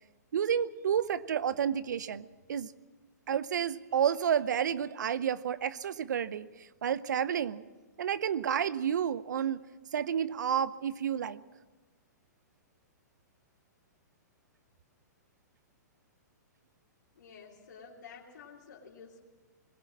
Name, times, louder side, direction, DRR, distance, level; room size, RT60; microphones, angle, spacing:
voice 1, 0.3-2.7 3.3-6.5 6.8-7.6 8.0-9.6 9.9-11.4, right 8 dB, 75° right, 16 dB, 0.8 m, -30 dB
voice 2, 17.1-19.2, left 6 dB, 80° left, -5 dB, 3.2 m, -51 dB
21.0 x 17.5 x 7.4 m, 1.3 s
hypercardioid pair, 130°, 10 cm